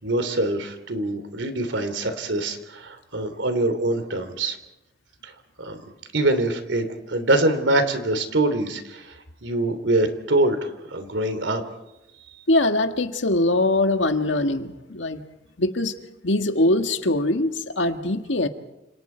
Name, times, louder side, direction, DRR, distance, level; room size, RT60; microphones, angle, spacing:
voice 1, 0.0-4.6 5.2-5.3 5.6-5.8 6.1-9.1 9.4-11.6, right 2 dB, 85° right, 9 dB, 3.2 m, -24 dB
voice 2, 12.5-15.2 15.6-15.9 16.2-18.5, left 2 dB, 85° left, 6 dB, 1.8 m, -22 dB
29.5 x 27.5 x 4.6 m, 0.91 s
head